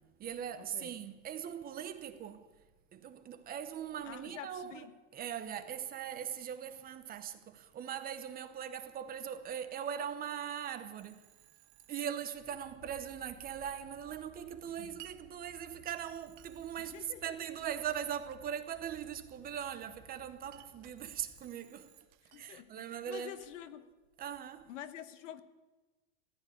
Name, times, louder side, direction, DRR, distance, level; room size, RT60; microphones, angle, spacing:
voice 1, 0.0-2.5 2.9-4.9 5.1-11.3 11.9-22.1 22.4-23.4 24.2-24.7, right 9 dB, 25° right, 0.9 m, -40 dB
voice 2, 0.6-0.9 4.0-4.9 14.8-15.0 16.8-17.3 22.3-22.7 23.1-23.9 24.7-25.4, left 11 dB, 75° left, 1.4 m, -47 dB
Telephone, 11.0-12.9 16.0-17.8 21.0-22.6, right 14 dB, 55° right, 1.6 m, -66 dB
sound 1, 12.3-21.5, left 2 dB, 25° left, 2.4 m, -60 dB
Glass, 15.0-15.2 16.4-16.9 17.8-18.5 19.3-20.0 20.4-21.0 22.1-22.5 22.8-24.4, right 14 dB, 70° right, 1.2 m, -58 dB
15.0 x 9.7 x 9.9 m
supercardioid pair, 140°, 37 cm